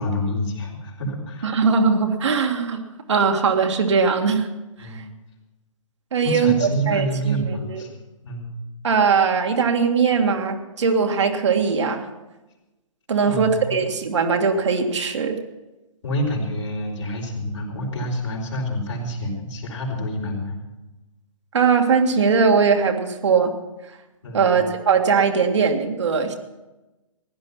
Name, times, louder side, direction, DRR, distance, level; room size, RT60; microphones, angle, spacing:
voice 1, 0.0-1.5 4.8-5.0 6.2-7.9 8.2-8.5 13.2-13.8 16.0-20.6 24.2-24.6, equal, 60° left, 0 dB, 4.6 m, -27 dB
voice 2, 1.4-2.8 3.1-4.5 4.8-5.0 6.1-7.8 8.8-12.1 13.1-15.4 21.5-23.5 24.3-26.3, right 5 dB, 60° right, 4 dB, 1.8 m, -20 dB
16.0 x 11.5 x 5.8 m, 1.1 s
figure-of-eight pair, 135°, 17 cm